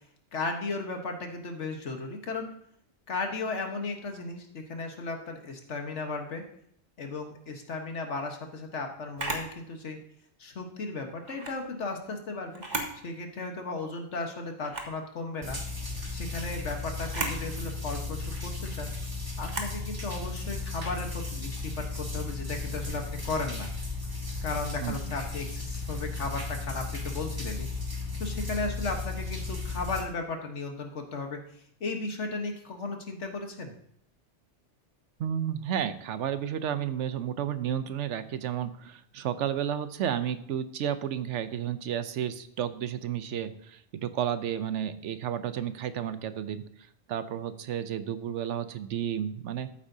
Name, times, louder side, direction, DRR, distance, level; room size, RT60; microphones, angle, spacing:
voice 1, 0.3-2.5 3.1-6.4 7.0-10.0 10.4-12.6 13.0-15.6 16.1-18.9 19.4-23.7 24.4-27.7 28.2-31.4 31.8-33.7, left 3 dB, 75° left, 4 dB, 1.6 m, -35 dB
Camera, 9.2-9.5 11.2-11.6 12.5-13.0 13.4-13.5 14.6-15.0 17.0-17.4 19.4-19.8, right 2 dB, 40° right, 1.4 m, -34 dB
sound 1, 15.4-30.0, left 3 dB, 20° right, 1.9 m, -35 dB
voice 2, 35.2-46.6 47.1-49.7, right 9 dB, 80° right, 12 dB, 1.0 m, -32 dB
13.5 x 8.4 x 2.7 m, 0.68 s
omnidirectional pair, 1.2 m